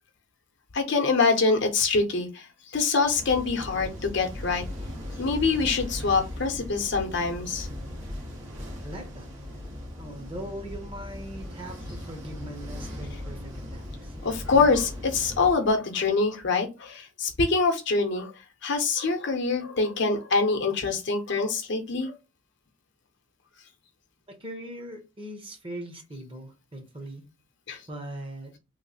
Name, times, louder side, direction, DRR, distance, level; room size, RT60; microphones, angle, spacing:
voice 1, 0.7-2.5 2.7-4.6 5.2-7.7 14.2-18.3 18.6-22.2 27.7-27.8, left 4 dB, 60° left, 0.8 m, -25 dB
sound 1, 3.1-15.5, left 1 dB, 65° right, 1.2 m, -38 dB
voice 2, 8.8-9.3 10.0-14.1 24.3-27.2 27.9-28.5, right 1 dB, 25° right, 0.9 m, -40 dB
3.2 x 2.0 x 3.9 m
head